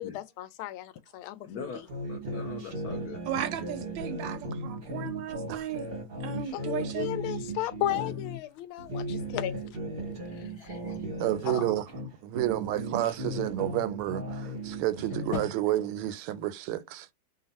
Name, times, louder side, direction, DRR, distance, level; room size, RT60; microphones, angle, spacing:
voice 1, 0.0-1.8 6.5-9.6 10.4-10.8, left 14 dB, 80° left, 1.4 m, -35 dB
voice 2, 1.4-1.8 2.1-3.2 7.9-8.2 10.6-11.0 11.4-11.7 15.3-15.4, left 6 dB, 60° left, 1.0 m, -39 dB
sound 1, 1.9-8.4 8.8-12.1 12.3-15.5, right 1 dB, 45° right, 0.8 m, -36 dB
voice 3, 3.3-5.9 6.2-7.1, right 10 dB, 75° right, 1.2 m, -35 dB
voice 4, 11.2-11.8 12.2-17.1, right 14 dB, 90° right, 1.5 m, -30 dB
3.4 x 2.4 x 4.0 m
omnidirectional pair, 2.3 m